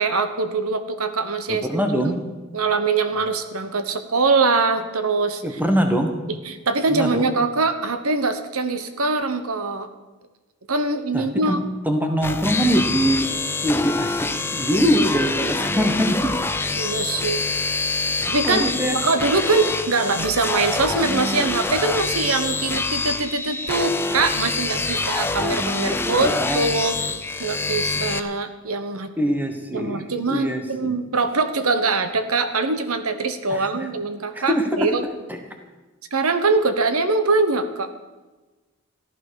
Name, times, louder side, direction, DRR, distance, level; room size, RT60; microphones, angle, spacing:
voice 1, 0.0-1.7 2.0-2.1 2.5-5.4 6.3-9.9 10.7-11.6 16.8-17.4 18.3-18.7 19.0-27.0 27.4-29.1 29.7-35.0 36.1-37.9, right 3 dB, 80° right, 9 dB, 1.2 m, -23 dB
voice 2, 1.5-2.2 3.1-3.2 5.4-6.1 6.9-7.3 11.1-11.6 11.8-13.3 13.6-16.3 18.4-19.0 25.9-26.7 27.9-28.1 29.2-31.0 33.5-33.9 34.3-34.9 35.3-35.4, equal, 10° right, 5 dB, 1.4 m, -23 dB
sound 1, 12.2-28.2, left 3 dB, 10° left, 0.6 m, -25 dB
14.5 x 12.0 x 6.5 m, 1.2 s
head